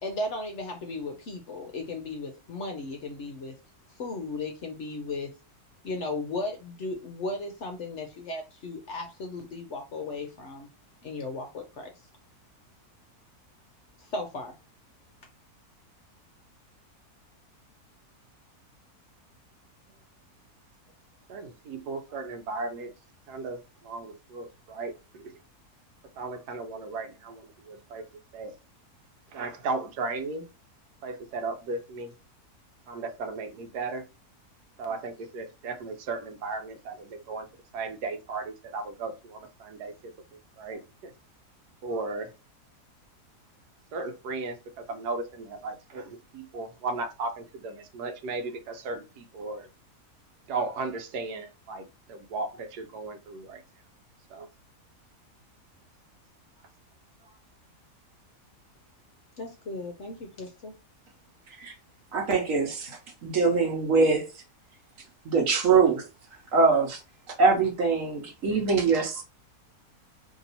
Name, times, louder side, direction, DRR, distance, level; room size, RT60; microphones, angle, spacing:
voice 1, 0.0-3.5 4.0-5.3 5.8-10.7 11.0-11.9 14.0-14.6 59.4-60.7, left 2 dB, 60° left, 0.8 m, -36 dB
voice 2, 21.3-22.9 23.3-23.6 23.8-25.3 26.2-28.0 28.3-28.5 29.3-30.5 31.0-32.1 32.9-34.0 34.8-37.5 37.7-39.9 40.6-41.1 41.8-42.3 43.9-49.7 50.5-51.8 52.1-53.6 54.3-54.5, right 3 dB, 80° right, 1.2 m, -35 dB
voice 3, 62.1-64.3 65.2-66.0 66.5-67.0 67.4-69.2, right 4 dB, 60° right, 1.3 m, -23 dB
3.0 x 2.8 x 3.9 m
omnidirectional pair, 1.7 m